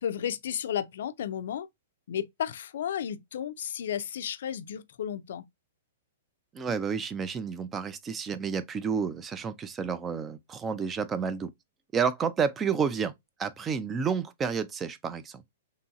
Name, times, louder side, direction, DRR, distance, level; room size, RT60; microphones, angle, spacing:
voice 1, 0.0-1.7 2.1-5.5, left 9 dB, 70° left, 0.4 m, -33 dB
voice 2, 6.5-11.5 11.9-13.1 13.4-15.4, right 6 dB, 15° right, 0.3 m, -30 dB
3.0 x 2.7 x 2.3 m
hypercardioid pair, 155°, 0 cm